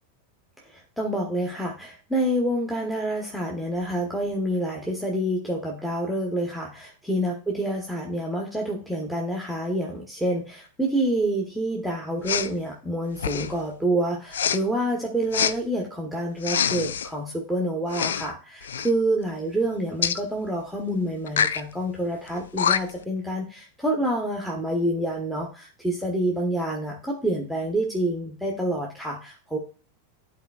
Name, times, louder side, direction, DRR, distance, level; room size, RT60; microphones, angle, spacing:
voice 1, 0.6-29.6, right 1 dB, ahead, -1 dB, 1.0 m, -27 dB
Respiratory sounds, 12.2-12.5 13.2-13.6 14.3-14.6 15.3-15.5 16.4-17.1 17.9-18.3 18.6-18.9 20.0-20.2 21.3-21.6 22.3-22.4 22.6-23.0, left 8 dB, 65° left, 0.3 m, -25 dB
11.5 x 4.0 x 2.3 m, 0.39 s
figure-of-eight pair, 90°, 0 cm